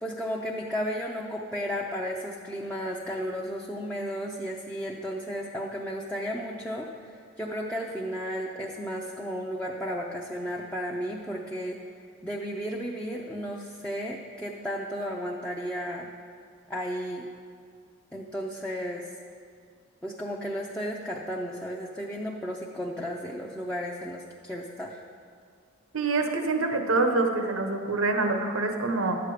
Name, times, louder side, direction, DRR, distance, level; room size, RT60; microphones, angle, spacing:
voice 1, 0.0-11.8 12.2-16.1 16.7-17.3 18.1-19.1 20.0-25.0, equal, 5° left, -3 dB, 0.6 m, -34 dB
voice 2, 25.9-29.2, right 3 dB, 90° right, 5 dB, 1.1 m, -26 dB
12.0 x 8.2 x 4.9 m, 2.2 s
head